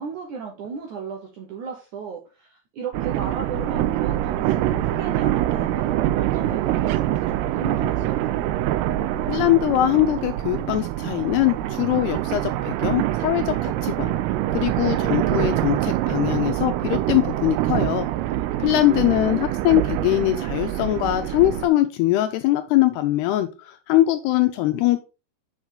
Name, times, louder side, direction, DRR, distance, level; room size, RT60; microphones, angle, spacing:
voice 1, 0.0-8.6 18.8-19.4, right 5 dB, 70° right, 1 dB, 1.8 m, -35 dB
sound 1, 2.9-21.7, right 13 dB, 90° right, 2.3 m, -25 dB
voice 2, 9.3-14.1 14.5-18.1 18.6-25.0, left 14 dB, 80° left, 8 dB, 2.4 m, -22 dB
7.2 x 6.0 x 3.8 m, 0.30 s
omnidirectional pair, 5.1 m